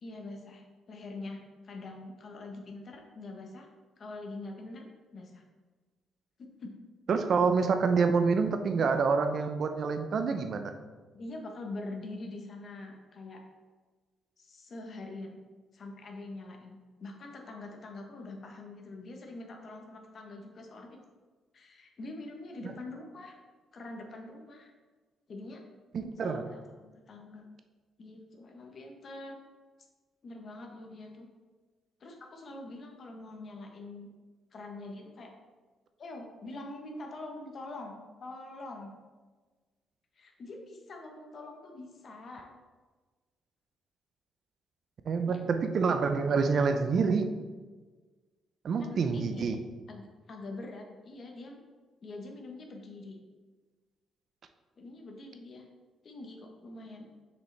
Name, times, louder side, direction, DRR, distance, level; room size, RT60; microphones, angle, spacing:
voice 1, 0.0-3.7 4.0-4.9 5.1-5.4 6.4-6.7 11.1-13.4 14.4-15.4 15.7-21.0 21.5-23.4 23.7-24.7 25.3-25.6 26.2-27.4 28.0-29.4 30.2-31.3 32.0-34.1 34.5-35.3 36.0-38.9 40.2-42.5 45.2-45.4 48.8-49.4 49.9-51.6 52.0-53.2 54.8-55.6 56.0-57.1, left 2 dB, 50° left, 2 dB, 1.2 m, -44 dB
voice 2, 7.1-10.7 22.6-22.7 25.9-26.4 45.1-47.3 48.6-49.6, right 5 dB, 55° right, 8 dB, 0.6 m, -27 dB
6.4 x 5.0 x 3.4 m, 1.4 s
cardioid pair, 90°, 0 cm